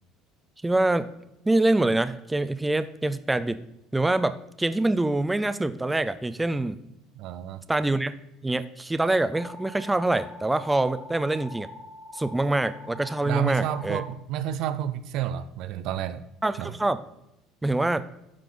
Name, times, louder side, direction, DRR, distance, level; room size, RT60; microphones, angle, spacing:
voice 1, 0.6-1.1 1.5-3.6 3.9-6.8 7.7-8.1 8.4-11.7 12.1-14.0 16.4-17.0 17.6-18.0, right 2 dB, 10° right, 12 dB, 0.4 m, -25 dB
voice 2, 7.1-7.6 13.2-16.2 16.6-16.7, right 10 dB, 65° right, 13 dB, 0.5 m, -30 dB
sound 1, 9.3-14.1, left 2 dB, 25° left, 1.5 m, -44 dB
12.0 x 4.5 x 3.9 m, 0.85 s
supercardioid pair, 95°, 0 cm